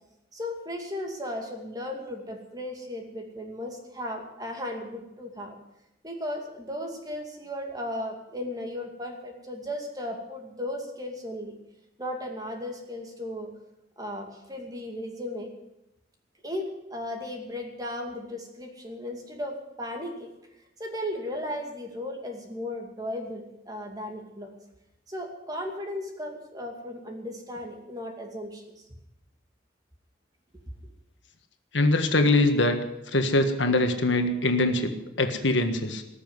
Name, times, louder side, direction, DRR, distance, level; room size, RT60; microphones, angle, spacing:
voice 1, 0.3-5.5 6.0-11.6 12.0-13.5 14.0-15.5 16.4-20.3 20.8-24.5 25.1-28.6, left 1 dB, 20° right, 2 dB, 2.4 m, -36 dB
voice 2, 31.7-32.8 33.1-36.0, left 2 dB, 75° left, 6 dB, 1.6 m, -23 dB
19.0 x 7.1 x 9.6 m, 0.90 s
head